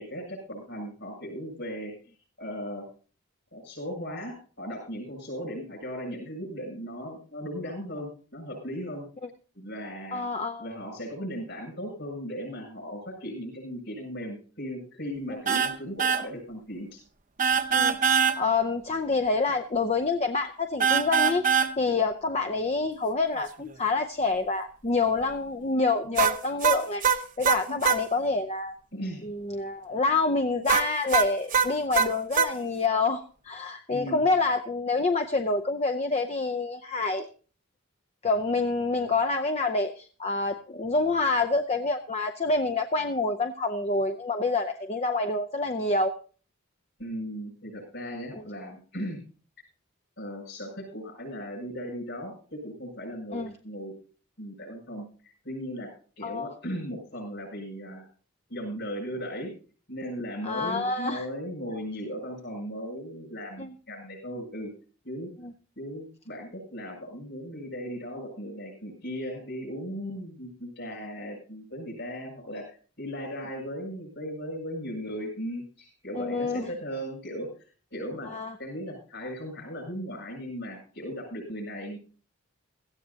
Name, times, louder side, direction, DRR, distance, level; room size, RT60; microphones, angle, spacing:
voice 1, 0.0-1.9 2.4-2.9 3.5-9.1 9.5-10.2 10.6-17.0 27.7-27.8 28.9-29.2 33.9-34.3 47.0-49.2 50.2-53.9 54.4-55.1 55.4-58.1 58.5-59.5 59.9-64.7 65.0-65.3 65.8-77.5 77.9-78.3 78.6-82.0, equal, 55° left, 4 dB, 7.1 m, -37 dB
voice 2, 10.1-10.6 15.3-15.4 17.7-28.7 29.2-37.3 38.2-46.1 48.4-48.5 53.3-53.5 56.2-56.5 60.4-61.3 63.6-63.7 65.4-65.5 76.2-76.7 78.2-78.5, left 3 dB, 30° left, 8 dB, 0.6 m, -27 dB
sound 1, 15.5-15.7 16.0-16.2 17.4-18.4 20.8-21.7 26.2-28.0 30.7-32.5, right 6 dB, 40° right, 0.8 m, -23 dB
17.0 x 15.0 x 2.8 m, 0.39 s
head